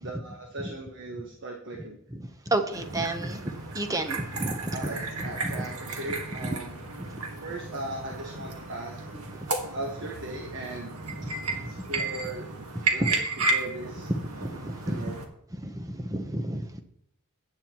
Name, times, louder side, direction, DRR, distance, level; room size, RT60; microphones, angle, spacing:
voice 1, 0.0-2.0 4.7-6.8 7.4-9.0 9.7-11.0 11.5-12.5 12.9-13.2 13.5-14.1 14.8-15.2, right 2 dB, 55° right, 1 dB, 1.4 m, -38 dB
voice 2, 2.1-4.8 5.4-5.6 6.4-6.6 7.0-7.1 9.4-9.5 11.5-11.6 13.0-13.1 14.1-15.1 15.6-16.7, right 1 dB, 15° right, 7 dB, 0.9 m, -31 dB
sound 1, 2.7-15.2, right 3 dB, 85° right, 1.7 m, -33 dB
15.5 x 9.6 x 3.0 m, 0.73 s
head